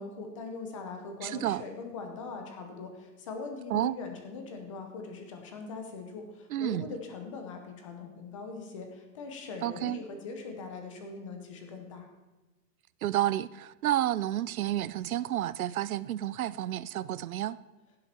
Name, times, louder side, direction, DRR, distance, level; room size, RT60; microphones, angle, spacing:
voice 1, 0.0-12.1, left 4 dB, 20° left, 4 dB, 0.8 m, -41 dB
voice 2, 1.2-1.6 3.7-4.0 6.5-6.9 9.6-10.0 13.0-17.6, right 13 dB, 60° right, 19 dB, 0.5 m, -30 dB
15.5 x 7.7 x 4.4 m, 1.1 s
hypercardioid pair, 175°, 48 cm